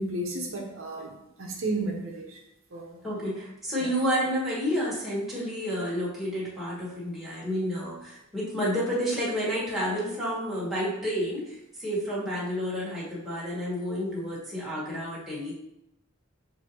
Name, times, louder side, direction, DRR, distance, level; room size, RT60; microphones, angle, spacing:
voice 1, 0.0-2.4 2.7-3.0 3.8-3.9, right 2 dB, 65° right, 0 dB, 0.7 m, -33 dB
voice 2, 3.0-15.5, equal, ahead, -9 dB, 1.3 m, -30 dB
5.9 x 2.6 x 3.0 m, 0.84 s
head